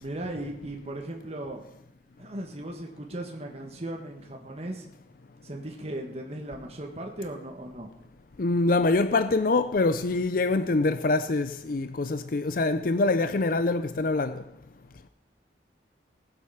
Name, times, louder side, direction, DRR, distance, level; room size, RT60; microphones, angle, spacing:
voice 1, 0.0-1.6 2.2-4.8 5.4-7.9, right 1 dB, 35° right, 1.5 m, -37 dB
voice 2, 8.4-14.4, left 3 dB, 50° left, 0.5 m, -25 dB
18.5 x 7.8 x 5.8 m
head